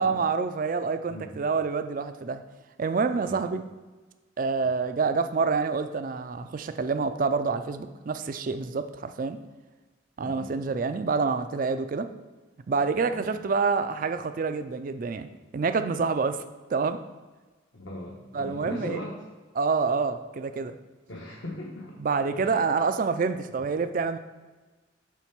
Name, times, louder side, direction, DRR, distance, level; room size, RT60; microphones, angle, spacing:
voice 1, 0.0-2.4 2.8-3.6 4.4-9.4 10.2-12.1 12.7-15.3 15.5-16.4 16.7-17.0 18.3-19.0 19.6-20.8 22.0-24.2, right 4 dB, 40° right, 10 dB, 0.3 m, -27 dB
voice 2, 3.1-3.4 10.2-10.5 13.1-13.3 17.7-19.1 21.1-21.9 22.3-22.6, left 1 dB, 70° left, -3 dB, 1.2 m, -39 dB
7.1 x 3.9 x 5.9 m, 1.2 s
head